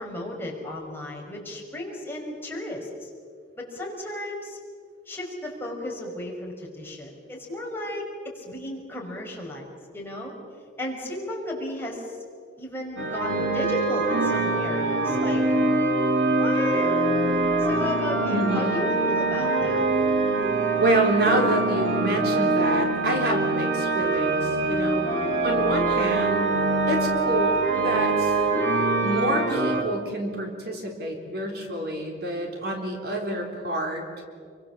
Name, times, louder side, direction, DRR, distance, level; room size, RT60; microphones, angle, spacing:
voice 1, 0.0-3.1 3.6-4.6 5.0-9.7 9.9-10.3 10.8-12.2 12.6-15.5 16.4-16.9 17.6-19.8, left 1 dB, 10° left, -2 dB, 5.1 m, -34 dB
sound 1, 13.0-29.8, right 2 dB, 85° right, 4.4 m, -24 dB
voice 2, 18.3-18.9 20.8-25.0 25.4-26.6 26.9-28.3 29.0-34.0, right 1 dB, 55° right, 2 dB, 3.9 m, -27 dB
28.5 x 24.0 x 7.4 m, 2.2 s
head